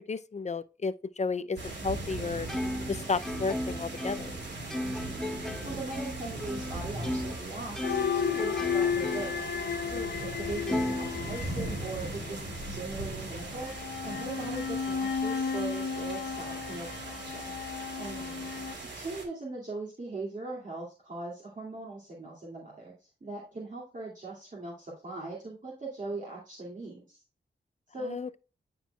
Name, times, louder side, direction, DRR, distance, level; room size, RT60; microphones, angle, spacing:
voice 1, 0.1-1.6 1.8-2.5 2.9-4.4 18.2-18.3 28.0-28.3, left 4 dB, 40° left, 0.5 m, -32 dB
sound 1, 1.6-19.2, right 2 dB, 70° right, 2.4 m, -39 dB
Plucked string instrument, 2.5-7.4 7.8-9.5 9.9-10.0 10.7-11.8, left 1 dB, 5° left, 0.7 m, -36 dB
voice 2, 5.6-9.5 9.8-13.7 14.0-17.5 18.0-18.2 18.9-27.2 27.9-28.2, right 2 dB, 40° right, 2.4 m, -40 dB
sound 2, 7.8-12.6 13.5-18.7, left 6 dB, 55° left, 0.9 m, -33 dB
10.0 x 4.5 x 2.2 m
cardioid pair, 65°, 19 cm